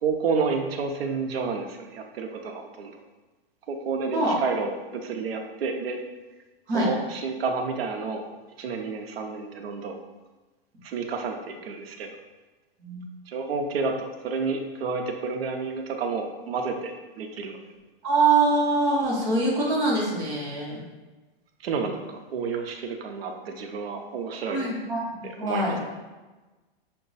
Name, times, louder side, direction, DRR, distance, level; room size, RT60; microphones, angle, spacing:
voice 1, 0.0-2.9 3.7-6.0 6.7-8.2 8.6-10.0 10.8-12.1 13.3-17.6 21.6-24.7 25.2-25.8, right 4 dB, 80° right, 4 dB, 0.7 m, -30 dB
voice 2, 18.0-20.8 24.5-25.8, right 2 dB, 15° right, -7 dB, 0.8 m, -24 dB
5.9 x 2.2 x 3.9 m, 1.2 s
supercardioid pair, 175°, 30 cm